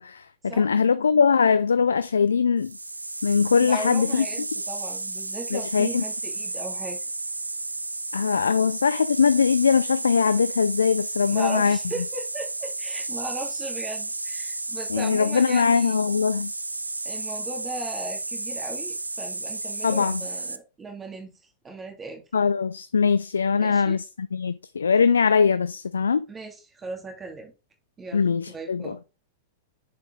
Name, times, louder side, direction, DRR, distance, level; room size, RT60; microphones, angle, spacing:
voice 1, 0.0-2.8 3.2-4.3 5.5-6.0 8.1-11.8 14.9-16.5 19.8-20.2 22.3-26.2 28.1-29.0, left 6 dB, 70° left, 0.4 m, -21 dB
sound 1, 2.6-20.6, right 2 dB, 85° right, 0.5 m, -32 dB
voice 2, 3.6-7.0 11.3-16.0 17.0-21.3 21.6-22.2 23.6-24.0 26.3-27.5 28.0-29.0, right 2 dB, 20° right, 2.6 m, -37 dB
6.9 x 5.1 x 3.9 m
figure-of-eight pair, 95°, 0 cm